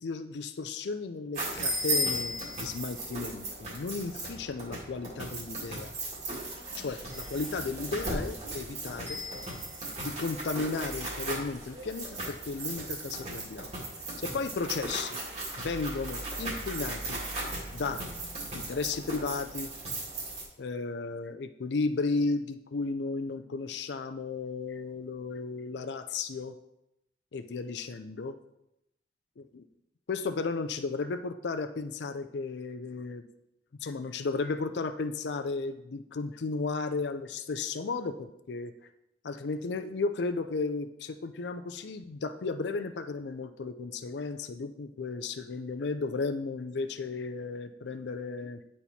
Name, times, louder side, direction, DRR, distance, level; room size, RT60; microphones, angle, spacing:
voice 1, 0.0-5.9 6.7-9.2 10.0-13.7 14.2-15.2 15.6-17.2 17.7-18.1 18.5-19.7 20.6-26.5 27.3-28.4 29.4-29.6 30.1-33.2 33.8-38.7 39.2-48.6, left 4 dB, 70° left, 8 dB, 0.5 m, -34 dB
sound 1, 1.3-20.4, right 1 dB, 40° right, 2.0 m, -36 dB
10.0 x 4.3 x 4.2 m, 0.83 s
head